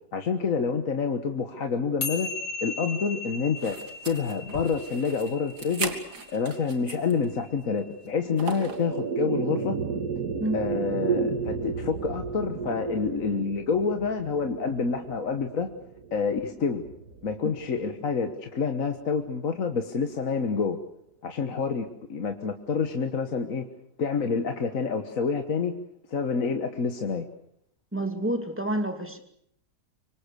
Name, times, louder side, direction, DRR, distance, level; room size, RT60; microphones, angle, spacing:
voice 1, 0.1-2.3 2.6-3.8 4.0-5.9 6.3-9.8 10.5-15.7 16.1-16.9 17.2-20.8 21.2-23.7 24.0-25.8 26.1-27.3, left 5 dB, 60° left, 6 dB, 1.7 m, -28 dB
sound 1, 2.0-8.6, left 3 dB, 80° left, 3.0 m, -38 dB
sound 2, 3.6-7.2 7.6-7.7 8.4-8.9, right 4 dB, 90° right, 2.9 m, -37 dB
sound 3, 8.0-18.6, right 5 dB, 65° right, 2.1 m, -33 dB
voice 2, 27.9-29.2, right 1 dB, 5° right, 6 dB, 2.6 m, -28 dB
25.0 x 25.0 x 6.8 m, 0.70 s
omnidirectional pair, 1.7 m